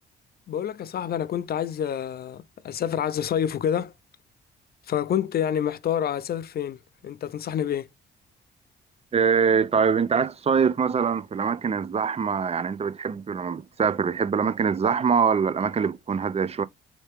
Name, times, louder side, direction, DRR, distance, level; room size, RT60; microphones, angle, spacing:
voice 1, 0.5-3.9 4.9-7.9, left 9 dB, 50° left, 0.5 m, -28 dB
voice 2, 9.1-16.6, right 6 dB, 30° right, 0.5 m, -23 dB
4.3 x 2.7 x 3.4 m
cardioid pair, 90°, 20 cm